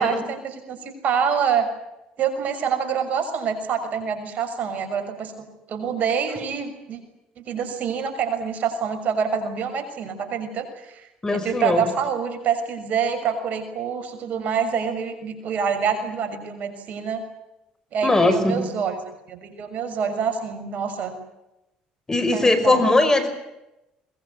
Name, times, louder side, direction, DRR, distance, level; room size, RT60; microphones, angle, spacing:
voice 1, 0.0-1.7 2.2-7.0 7.4-11.1 11.3-17.2 17.9-19.0 19.3-21.2 22.3-22.8, right 6 dB, 55° right, 7 dB, 6.4 m, -26 dB
voice 2, 11.2-11.9 18.0-18.6 22.1-23.3, left 2 dB, 20° left, 11 dB, 5.4 m, -20 dB
22.5 x 22.0 x 9.6 m, 0.92 s
supercardioid pair, 80°, 3 cm